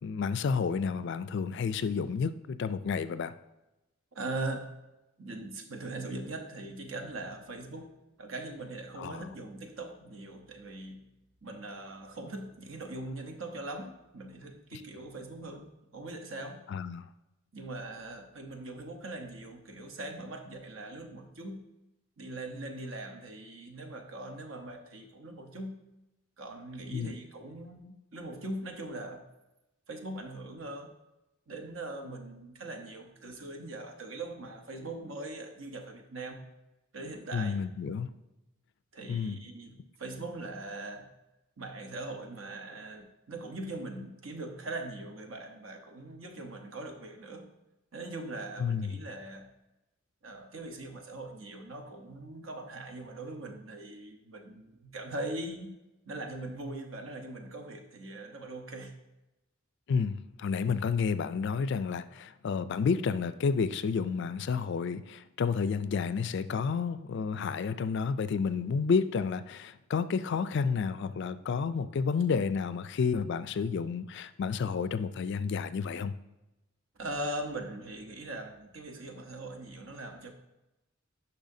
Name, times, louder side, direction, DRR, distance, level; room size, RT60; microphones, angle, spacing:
voice 1, 0.0-3.3 9.0-9.3 14.7-14.8 16.7-17.0 26.9-27.1 37.3-38.1 39.1-39.4 48.6-49.0 59.9-76.1, left 5 dB, 55° left, 0.3 m, -30 dB
voice 2, 4.1-4.7 5.2-7.9 8.2-11.1 11.4-16.6 17.5-21.7 22.2-25.8 26.4-29.2 29.9-30.9 31.5-36.4 36.9-37.6 38.9-41.1 41.6-47.5 47.9-49.5 50.2-55.7 56.1-59.0 76.9-80.3, right 2 dB, 70° right, 0.9 m, -41 dB
10.5 x 5.6 x 2.7 m
head